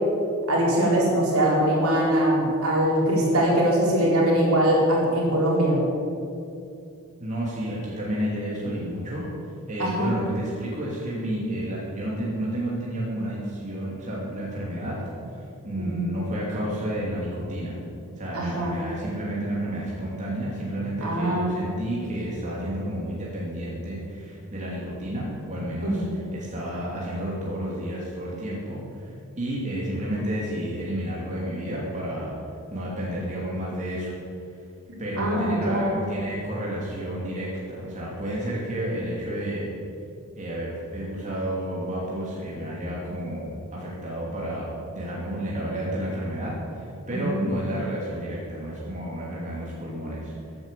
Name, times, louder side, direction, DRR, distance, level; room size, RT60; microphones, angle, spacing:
voice 1, 0.5-5.8 9.8-10.1 15.8-16.1 18.3-18.7 21.0-21.5 25.8-26.1 35.2-35.9 47.1-47.4, right 1 dB, 70° right, -4 dB, 4.2 m, -22 dB
voice 2, 7.2-9.3 9.7-15.0 15.3-17.8 18.2-32.4 32.7-34.1 35.0-39.7 40.3-44.7 44.9-50.3, right 1 dB, 35° right, -5 dB, 2.6 m, -31 dB
15.0 x 9.0 x 6.8 m, 2.6 s
head